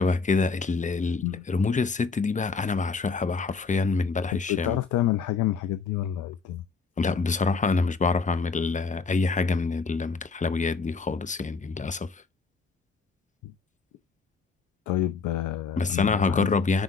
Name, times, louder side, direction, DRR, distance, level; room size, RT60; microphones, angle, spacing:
voice 1, 0.0-4.8 7.0-12.1 15.8-16.8, left 4 dB, 25° left, 0.7 m, -26 dB
voice 2, 4.5-6.6 13.4-13.5 14.9-16.6, left 14 dB, 70° left, 0.6 m, -28 dB
9.9 x 3.7 x 3.1 m
hypercardioid pair, 40°, 31 cm